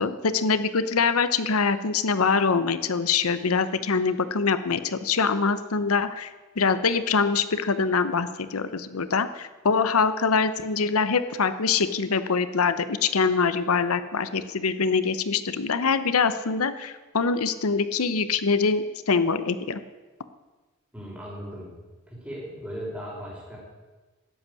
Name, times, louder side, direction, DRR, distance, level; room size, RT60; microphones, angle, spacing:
voice 1, 0.0-6.3 6.6-19.8, left 5 dB, 90° left, 13 dB, 0.8 m, -24 dB
voice 2, 20.9-21.8 22.1-23.6, equal, 5° right, -4 dB, 4.9 m, -37 dB
14.0 x 8.2 x 9.7 m, 1.2 s
head